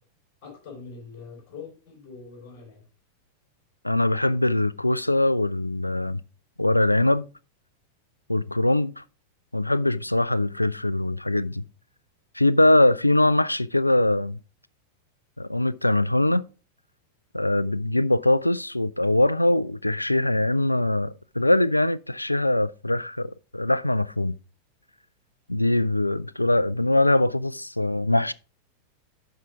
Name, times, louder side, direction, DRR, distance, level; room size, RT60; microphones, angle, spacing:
voice 1, 0.4-2.8, left 5 dB, 40° left, 4.6 m, -43 dB
voice 2, 3.8-6.2 6.6-7.3 8.3-9.0 9.5-11.6 12.3-14.4 15.4-16.4 17.3-24.4 25.5-28.3, left 1 dB, 85° left, 0.3 m, -22 dB
12.0 x 4.8 x 3.8 m
figure-of-eight pair, 90°, 0 cm